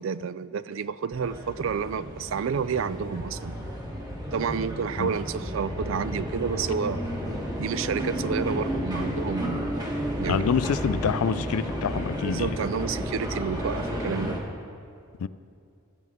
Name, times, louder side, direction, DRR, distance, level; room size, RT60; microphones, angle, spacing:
voice 1, 0.0-3.6 4.3-7.1 7.6-9.7 10.2-10.5 11.3-11.4 12.3-14.4, right 6 dB, 60° right, 0.3 m, -30 dB
sound 1, 1.1-14.4, equal, 15° right, 1.4 m, -32 dB
voice 2, 10.3-12.6 15.2-15.3, left 7 dB, 85° left, 0.4 m, -27 dB
16.0 x 12.0 x 3.6 m
head